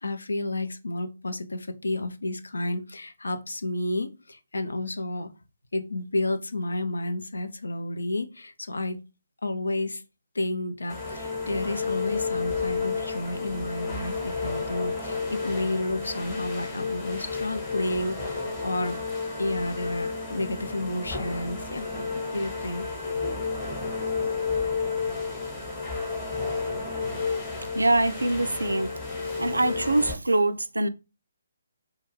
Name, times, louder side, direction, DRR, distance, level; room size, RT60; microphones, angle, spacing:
voice 1, 0.0-5.3 5.7-9.0 9.4-10.0 10.3-19.0 19.4-21.9 22.3-22.9, left 2 dB, 75° left, 0.4 m, -31 dB
sound 1, 10.9-30.1, left 4 dB, 20° left, 0.9 m, -31 dB
voice 2, 27.7-28.9 29.4-30.9, right 2 dB, 85° right, 0.3 m, -23 dB
2.3 x 2.3 x 3.1 m
figure-of-eight pair, 145°, 0 cm